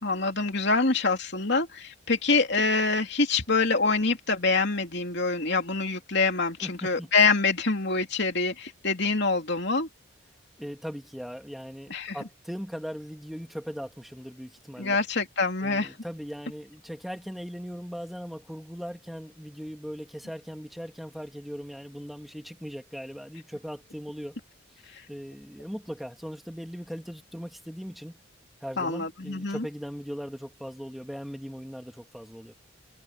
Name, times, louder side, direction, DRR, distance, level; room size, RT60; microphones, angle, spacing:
voice 1, 0.0-9.9 11.9-12.2 14.8-15.9 28.8-29.6, left 3 dB, 55° left, 3.1 m, -25 dB
voice 2, 6.6-7.1 10.6-15.0 15.6-24.4 25.1-28.2 28.6-32.5, equal, ahead, 2.6 m, -39 dB
head